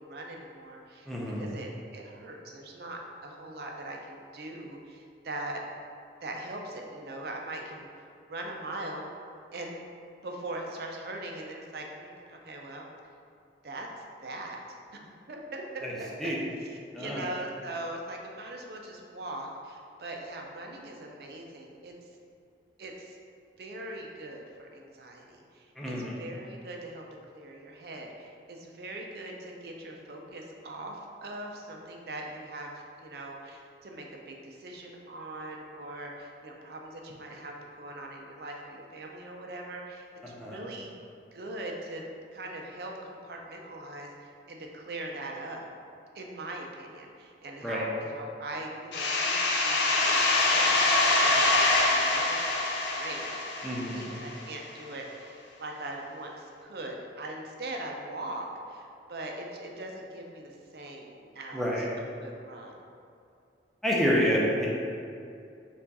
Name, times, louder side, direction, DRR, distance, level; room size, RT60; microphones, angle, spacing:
voice 1, 0.0-5.6 6.2-7.9 8.3-9.1 9.5-9.8 10.2-12.9 13.6-13.9 14.2-14.6 14.9-21.9 22.8-23.2 23.6-40.9 41.3-42.0 42.3-45.7 46.1-50.9 51.2-53.4 53.7-61.9 62.2-62.8, right 1 dB, 60° right, 1 dB, 0.5 m, -41 dB
voice 2, 1.1-1.5 15.8-15.9 16.2-16.4 16.9-17.2 25.8-26.1 40.2-40.6 47.6-47.8 53.6-54.0 61.5-61.9 63.8-64.7, equal, ahead, -5 dB, 0.5 m, -28 dB
sound 1, 48.9-54.4, left 2 dB, 75° left, 0.5 m, -25 dB
4.5 x 2.4 x 4.0 m, 2.5 s
head